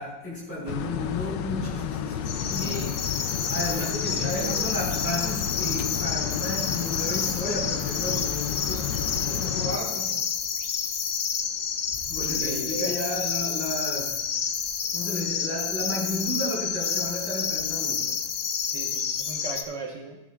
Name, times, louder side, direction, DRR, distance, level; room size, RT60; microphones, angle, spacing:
voice 1, 0.0-3.0 3.5-9.0 9.3-10.1 12.1-14.2 14.9-18.2, left 1 dB, 5° left, -5 dB, 4.3 m, -33 dB
sound 1, 0.7-9.8, left 9 dB, 75° left, 1.2 m, -32 dB
sound 2, 2.3-19.6, left 7 dB, 60° left, 1.0 m, -29 dB
voice 2, 2.6-2.9 3.7-4.6 9.2-10.2 12.2-12.9 18.7-20.2, right 2 dB, 70° right, -1 dB, 1.8 m, -38 dB
16.0 x 9.9 x 2.3 m, 0.96 s
omnidirectional pair, 2.0 m